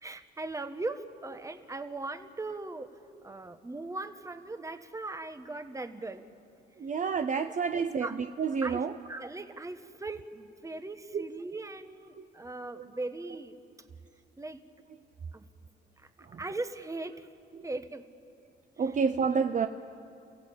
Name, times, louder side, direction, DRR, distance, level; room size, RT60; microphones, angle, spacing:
voice 1, 0.0-2.9 3.2-6.2 7.7-8.2 8.6-8.8 9.1-13.6 14.4-14.6 15.3-15.4 16.0-17.3 17.6-18.1, right 2 dB, 15° right, 9 dB, 1.3 m, -39 dB
voice 2, 6.8-8.1 8.4-8.9 11.1-11.2 12.2-12.3 12.8-12.9 16.3-16.4 17.6-17.7 18.8-19.7, right 6 dB, 40° right, 8 dB, 0.7 m, -29 dB
29.0 x 15.5 x 8.7 m, 2.5 s
cardioid pair, 90°, 20 cm